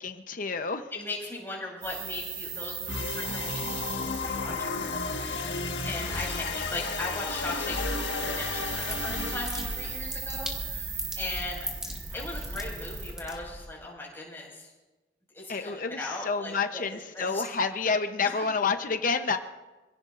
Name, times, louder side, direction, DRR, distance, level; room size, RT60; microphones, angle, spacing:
voice 1, 0.0-0.9 15.5-19.4, left 5 dB, 50° left, 7 dB, 0.8 m, -29 dB
voice 2, 0.9-11.7 12.1-14.7 15.3-17.4 18.2-18.4, left 2 dB, 15° left, -3 dB, 5.6 m, -38 dB
sound 1, 1.8-13.1, right 6 dB, 85° right, 6.7 m, -39 dB
sound 2, 2.9-10.0, left 3 dB, 90° left, 1.6 m, -33 dB
sound 3, 8.4-13.8, equal, 5° right, 2.0 m, -39 dB
27.0 x 17.0 x 2.6 m, 1.1 s
head